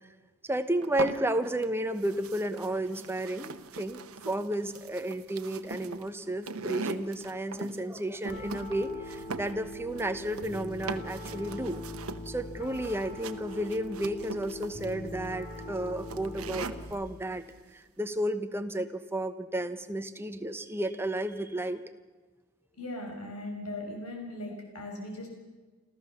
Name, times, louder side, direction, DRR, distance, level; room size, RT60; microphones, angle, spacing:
voice 1, 0.4-11.8 12.2-21.8, right 1 dB, 10° right, 9 dB, 1.0 m, -32 dB
sound 1, 0.8-1.7 2.0-17.0, right 4 dB, 65° right, 1.0 m, -41 dB
Piano, 8.3-16.9, left 1 dB, 40° left, 3.6 m, -42 dB
voice 2, 22.8-25.3, left 1 dB, 85° left, 1 dB, 6.1 m, -38 dB
28.5 x 14.0 x 7.1 m, 1.3 s
head